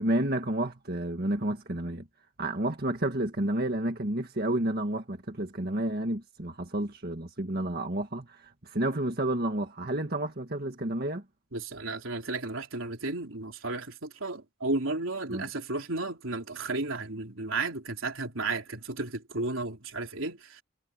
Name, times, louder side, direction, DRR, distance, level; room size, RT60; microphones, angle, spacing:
voice 1, 0.0-2.1 2.4-11.2 15.3-15.5, right 1 dB, 50° right, 1.9 m, -30 dB
voice 2, 11.5-20.6, right 2 dB, 80° right, 3.5 m, -33 dB
head